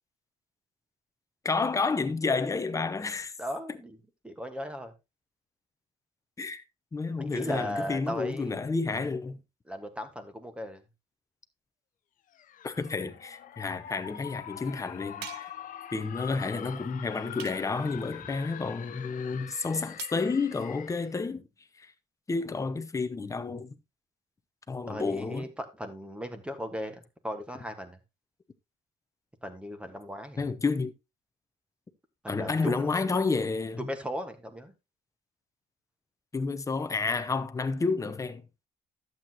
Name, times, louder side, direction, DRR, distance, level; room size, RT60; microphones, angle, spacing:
voice 1, 1.4-3.3 6.4-6.6 6.9-9.4 12.6-15.5 15.9-21.4 21.8-21.9 22.3-23.7 24.7-25.5 30.4-30.9 32.3-33.9 36.3-38.4, left 4 dB, 20° left, 0.8 m, -30 dB
voice 2, 3.4-4.0 4.2-4.9 7.2-8.7 9.7-10.8 24.9-28.0 29.4-30.4 32.2-33.2 33.8-34.7, equal, 5° right, 1.5 m, -37 dB
sound 1, 12.3-21.2, left 10 dB, 50° left, 0.7 m, -44 dB
sound 2, 15.2-15.7 17.4-17.9 20.0-20.2, right 15 dB, 75° right, 0.5 m, -44 dB
11.5 x 7.9 x 2.9 m
cardioid pair, 110°, 17 cm